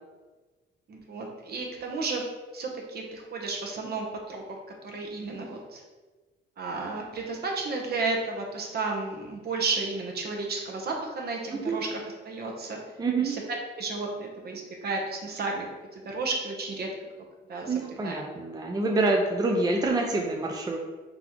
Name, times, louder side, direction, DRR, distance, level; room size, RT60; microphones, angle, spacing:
voice 1, 0.9-2.2 2.5-4.6 4.8-5.8 6.6-11.9 12.3-12.8 13.2-13.4 13.8-16.9 17.5-17.7 18.0-18.2, right 3 dB, 55° right, 1 dB, 0.9 m, -32 dB
voice 2, 11.5-11.8 13.0-13.4 17.7-20.8, right 3 dB, 20° right, 1 dB, 0.5 m, -26 dB
3.9 x 3.6 x 3.0 m, 1.3 s
cardioid pair, 90°, 20 cm